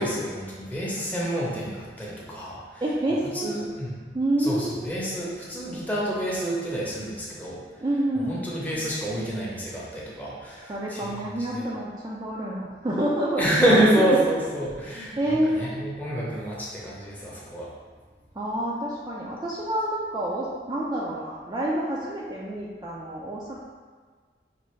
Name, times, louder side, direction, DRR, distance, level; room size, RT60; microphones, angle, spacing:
voice 1, 0.0-2.8 3.3-4.0 4.4-7.6 8.1-11.1 11.5-11.7 13.4-17.7, right 1 dB, 10° left, -6 dB, 0.8 m, -27 dB
voice 2, 2.8-3.7 4.1-5.0 7.8-8.4 10.7-13.4 15.2-15.8 18.3-23.6, right 1 dB, 20° right, -6 dB, 0.4 m, -28 dB
5.5 x 2.5 x 3.1 m, 1.5 s
head